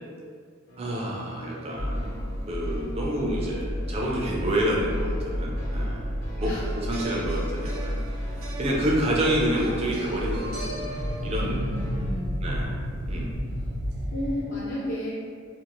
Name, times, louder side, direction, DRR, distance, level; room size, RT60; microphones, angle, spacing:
sound 1, 0.7-12.1, equal, 75° left, 0.8 m, -43 dB
voice 1, 0.8-6.0 6.4-8.2 8.6-10.9 11.2-11.6 12.4-12.7 13.1-13.3, right 1 dB, 30° right, -3 dB, 0.4 m, -28 dB
sound 2, 1.7-14.4, equal, 65° right, 1.0 m, -31 dB
sound 3, 6.4-12.1 13.9-14.0, right 2 dB, 80° right, 0.6 m, -41 dB
voice 2, 11.4-12.4 14.1-15.1, left 1 dB, 55° left, -9 dB, 0.4 m, -33 dB
2.6 x 2.4 x 2.9 m, 2.1 s
head